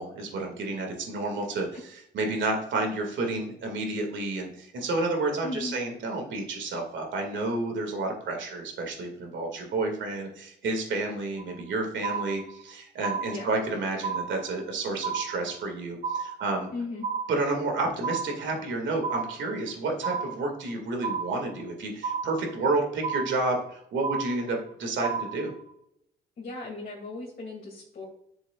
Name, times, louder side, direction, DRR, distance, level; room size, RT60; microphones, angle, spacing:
voice 1, 0.0-16.7 17.3-25.5, right 2 dB, 70° right, 2 dB, 2.3 m, -30 dB
voice 2, 5.4-5.8 13.2-13.5 16.7-17.1 26.4-28.0, left 2 dB, 50° left, -5 dB, 2.7 m, -37 dB
sound 1, 11.4-11.7 12.0-12.7 13.0-13.7 14.0-14.7 15.0-15.7 16.0-16.7 17.0-17.7 18.0-18.7 19.0-19.7 20.0-20.7 21.0-21.7 22.0-22.7 23.0-23.7 24.0-24.7 25.0-25.7, right 6 dB, 35° right, 0.8 m, -33 dB
11.0 x 7.0 x 2.5 m, 0.75 s
cardioid pair, 90°, 20 cm